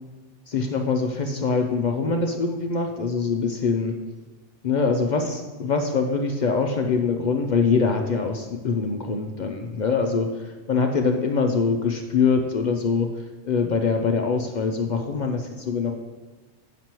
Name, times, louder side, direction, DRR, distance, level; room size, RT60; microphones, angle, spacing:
voice 1, 0.5-3.9 4.6-13.1 13.4-15.9, left 4 dB, 60° left, 4 dB, 0.5 m, -24 dB
9.1 x 6.0 x 2.9 m, 1.2 s
omnidirectional pair, 1.3 m